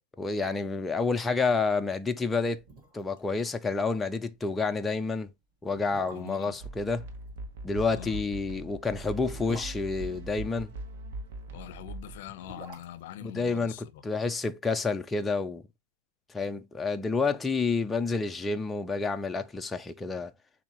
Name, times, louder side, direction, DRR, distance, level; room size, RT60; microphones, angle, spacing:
voice 1, 0.2-2.6 2.9-5.3 5.6-7.1 7.6-10.7 13.2-13.7 14.0-15.6 16.3-20.3, left 4 dB, 10° left, 0.3 m, -29 dB
sound 1, 2.6-3.3 3.5-3.6 4.0-4.2 4.9-5.0 5.6-6.6 8.1-10.8 12.0-14.3 14.5-14.6, right 1 dB, 30° right, 1.5 m, -48 dB
voice 2, 6.1-6.6 7.9-8.2 11.5-14.0, left 11 dB, 55° left, 0.7 m, -43 dB
sound 2, 6.6-12.2, right 2 dB, 60° right, 1.0 m, -41 dB
7.1 x 2.6 x 2.9 m
supercardioid pair, 170°, 0 cm